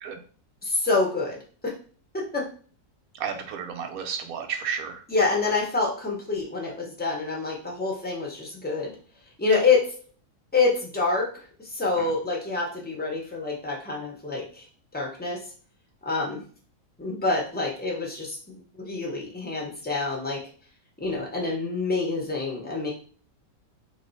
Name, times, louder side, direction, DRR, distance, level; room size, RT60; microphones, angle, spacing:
voice 1, 0.6-1.4 2.1-2.4 5.1-8.9 9.4-9.8 10.5-11.3 11.6-14.6 14.9-15.4 16.0-16.4 17.0-20.4 21.0-22.9, left 3 dB, 10° left, -2 dB, 0.6 m, -27 dB
voice 2, 3.1-5.0 12.0-12.1, right 7 dB, 70° right, 6 dB, 0.9 m, -32 dB
3.1 x 2.7 x 4.0 m, 0.41 s
omnidirectional pair, 1.8 m